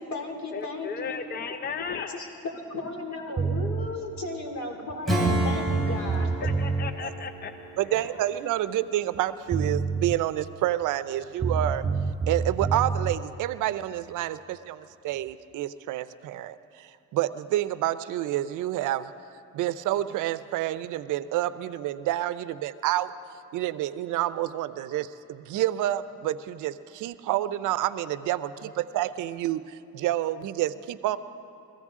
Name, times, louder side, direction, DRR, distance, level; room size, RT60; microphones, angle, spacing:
voice 1, 0.0-1.1 1.9-6.3 8.1-8.2, left 2 dB, 65° left, 2 dB, 2.8 m, -35 dB
voice 2, 0.5-2.2 6.4-7.7, left 6 dB, 30° left, 8 dB, 0.6 m, -35 dB
sound 1, 3.4-3.9 4.9-5.0 5.3-6.9 9.2-9.3 9.5-10.2 11.4-13.2, right 4 dB, 20° right, 0.6 m, -27 dB
Acoustic guitar / Strum, 5.0-9.3, right 1 dB, ahead, 1.9 m, -32 dB
voice 3, 7.8-11.8 12.3-19.1 19.5-23.1 23.5-31.2, right 13 dB, 85° right, 14 dB, 0.6 m, -28 dB
23.0 x 15.0 x 3.7 m, 2.6 s
cardioid pair, 90°, 30 cm